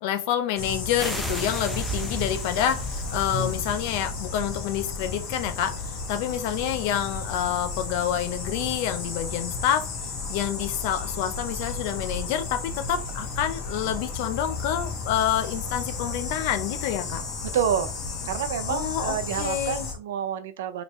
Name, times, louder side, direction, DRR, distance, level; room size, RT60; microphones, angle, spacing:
voice 1, 0.0-5.7 6.1-9.9 10.3-17.2 18.7-19.9, left 10 dB, 55° left, 0.6 m, -28 dB
sound 1, 0.6-19.9, left 4 dB, 35° left, 1.3 m, -33 dB
sound 2, 1.0-4.4, equal, 20° left, 1.5 m, -36 dB
sound 3, 1.0-3.6, right 1 dB, ahead, 0.5 m, -38 dB
voice 2, 17.5-17.9 18.2-20.8, right 8 dB, 75° right, 0.5 m, -28 dB
4.1 x 3.3 x 3.0 m
supercardioid pair, 155°, 0 cm